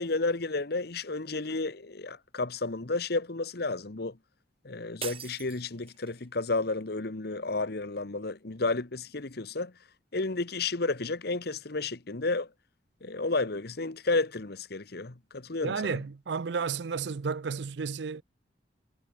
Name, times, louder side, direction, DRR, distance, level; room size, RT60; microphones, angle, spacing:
voice 1, 0.0-4.2 4.6-9.7 10.1-12.5 13.0-16.0, left 3 dB, 60° left, 1.2 m, -32 dB
sound 1, 5.0-6.3, right 8 dB, 30° right, 1.0 m, -41 dB
voice 2, 15.6-18.2, right 5 dB, 70° right, 0.5 m, -32 dB
head